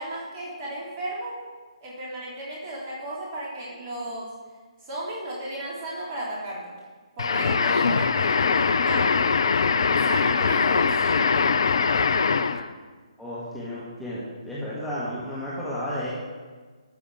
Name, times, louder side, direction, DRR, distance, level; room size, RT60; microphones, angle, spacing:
voice 1, 0.0-1.4 1.8-4.3 4.9-6.6 7.2-9.1 10.0-11.3, right 1 dB, 30° right, -5 dB, 3.7 m, -34 dB
sound 1, 7.2-12.7, left 5 dB, 55° left, 0.5 m, -22 dB
voice 2, 13.2-16.1, equal, ahead, -10 dB, 1.7 m, -32 dB
12.5 x 6.4 x 4.9 m, 1.4 s
figure-of-eight pair, 140°, 3 cm